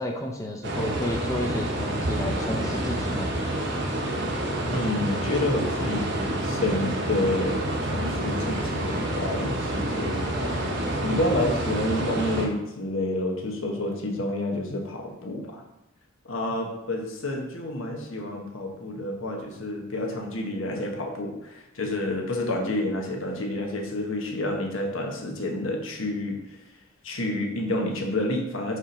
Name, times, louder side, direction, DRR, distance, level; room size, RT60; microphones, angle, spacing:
voice 1, 0.0-3.3, left 1 dB, 15° left, 1 dB, 0.6 m, -31 dB
sound 1, 0.6-12.5, right 1 dB, 60° right, 1.0 m, -28 dB
voice 2, 4.7-10.5 11.0-15.6 16.2-26.4 27.0-28.8, left 1 dB, 80° left, 1 dB, 1.2 m, -29 dB
4.9 x 4.3 x 5.3 m, 0.91 s
head